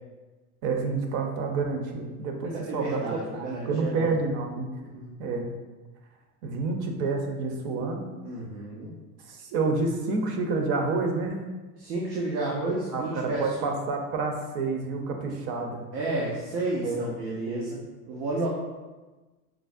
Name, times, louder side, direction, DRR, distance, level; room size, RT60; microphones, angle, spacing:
voice 1, 0.6-3.0 3.3-4.7 5.2-5.5 6.4-8.0 9.3-11.4 12.9-15.8 16.8-17.0 17.5-17.7, right 3 dB, 50° right, 3 dB, 0.7 m, -29 dB
voice 2, 2.4-4.1 4.8-5.1 8.2-8.9 11.8-13.7 15.9-17.8 18.1-18.5, right 2 dB, 90° right, -5 dB, 0.8 m, -31 dB
4.6 x 2.0 x 2.4 m, 1.2 s
supercardioid pair, 105°, 48 cm